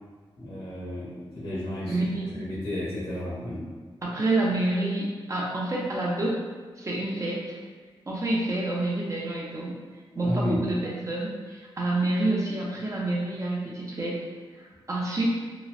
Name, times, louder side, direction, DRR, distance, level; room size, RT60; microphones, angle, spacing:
voice 1, 0.4-2.0 2.3-3.6 10.1-10.6, left 1 dB, 85° left, -10 dB, 1.4 m, -32 dB
voice 2, 1.9-2.4 4.0-6.4 6.8-7.6 8.1-9.8 10.1-14.2 14.6-15.3, right 2 dB, 35° right, -4 dB, 0.7 m, -28 dB
3.0 x 2.2 x 2.4 m, 1.5 s
cardioid pair, 75°, 9 cm